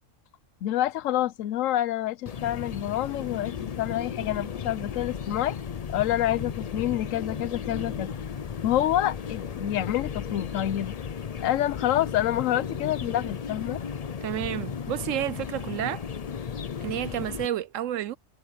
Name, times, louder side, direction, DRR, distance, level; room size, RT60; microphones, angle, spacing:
voice 1, 0.6-5.6 5.9-8.1 8.6-11.0 11.4-13.8, left 13 dB, 80° left, 1.0 m, -27 dB
sound 1, 2.3-17.5, left 7 dB, 45° left, 0.5 m, -35 dB
voice 2, 14.2-16.0 16.8-18.2, right 12 dB, 80° right, 1.0 m, -30 dB
omnidirectional pair, 1.4 m